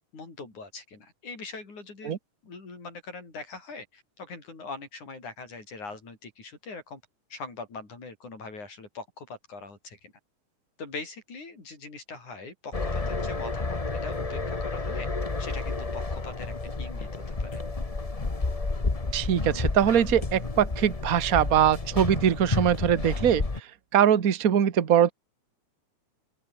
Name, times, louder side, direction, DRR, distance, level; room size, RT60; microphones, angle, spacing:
voice 1, 0.1-2.2 2.4-7.0 7.3-10.1 10.8-15.1 15.4-17.6, left 3 dB, 80° left, 8.4 m, -42 dB
sound 1, 12.7-23.6, left 3 dB, 30° left, 0.6 m, -31 dB
voice 2, 19.1-23.4 23.9-25.1, right 9 dB, 40° right, 1.4 m, -22 dB
open air
omnidirectional pair, 3.4 m